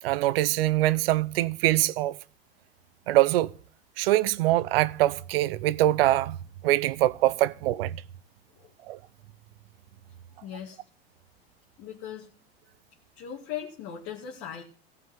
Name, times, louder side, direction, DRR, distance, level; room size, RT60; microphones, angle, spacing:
voice 1, 0.0-2.2 3.1-3.5 4.0-6.4 6.6-8.0 8.9-9.0, right 15 dB, 70° right, 0.7 m, -23 dB
voice 2, 10.4-10.8 11.8-12.3 13.2-14.6, left 9 dB, 50° left, 2.3 m, -38 dB
15.5 x 5.8 x 9.1 m
hypercardioid pair, 95°, 30 cm